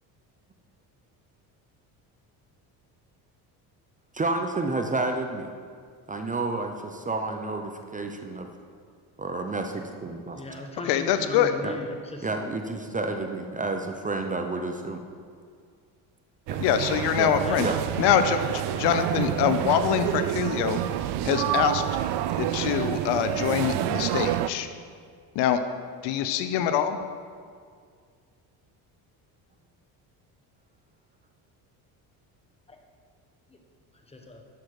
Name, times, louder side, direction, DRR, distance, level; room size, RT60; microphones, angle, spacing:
voice 1, 4.1-5.5 6.1-8.5 9.2-10.4 11.6-11.7 12.2-15.0 16.5-16.6 17.2-17.3 17.6-17.8, right 3 dB, 20° right, 5 dB, 0.6 m, -30 dB
voice 2, 10.3-12.3 17.4-17.7 32.7-32.8 33.5-33.6 33.9-34.5, left 2 dB, 15° left, 3 dB, 1.3 m, -39 dB
voice 3, 10.9-11.5 16.6-17.7 18.0-21.8 22.3-24.7 25.3-25.6 26.0-27.0, left 9 dB, 75° left, 9 dB, 0.8 m, -24 dB
sound 1, 16.5-24.5, right 12 dB, 70° right, 0.5 m, -28 dB
10.5 x 6.6 x 4.7 m, 2.1 s
cardioid pair, 100°, 42 cm